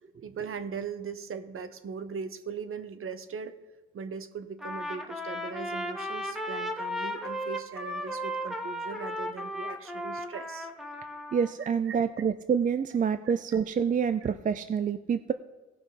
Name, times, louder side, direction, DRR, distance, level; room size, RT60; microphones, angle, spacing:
voice 1, 0.2-3.6 3.9-10.7 11.9-12.0 14.2-14.3, right 6 dB, 45° right, 11 dB, 0.9 m, -39 dB
Trumpet, 4.6-11.5, equal, ahead, 1.2 m, -35 dB
voice 2, 11.3-15.3, right 7 dB, 25° right, 11 dB, 0.4 m, -27 dB
16.5 x 5.8 x 4.1 m, 1.2 s
cardioid pair, 90°, 30 cm